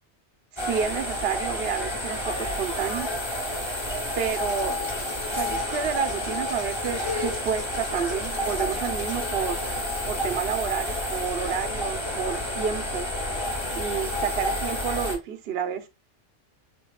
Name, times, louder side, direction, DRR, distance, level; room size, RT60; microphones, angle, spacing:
voice 1, 0.5-3.1 4.2-4.8 5.3-9.6 10.1-13.1 13.8-15.9, right 7 dB, 60° right, 0.9 m, -30 dB
sound 1, 0.6-15.1, left 1 dB, 20° left, 1.4 m, -30 dB
sound 2, 4.3-9.2, left 3 dB, 60° left, 1.8 m, -45 dB
6.2 x 3.6 x 2.3 m
omnidirectional pair, 1.3 m